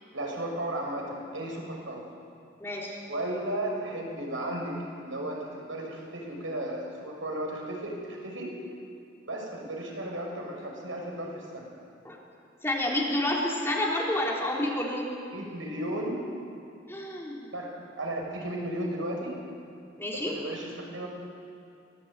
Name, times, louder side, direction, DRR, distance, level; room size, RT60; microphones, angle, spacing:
voice 1, 0.1-2.0 3.0-8.5 9.3-11.7 15.3-16.2 17.5-17.7 18.0-19.3 20.3-21.1, right 1 dB, 85° right, 0 dB, 6.4 m, -34 dB
voice 2, 2.6-3.0 12.0-12.2 12.6-15.1 16.9-17.5 20.0-20.3, left 1 dB, 15° left, -3 dB, 3.8 m, -29 dB
24.0 x 18.5 x 9.2 m, 2.6 s
head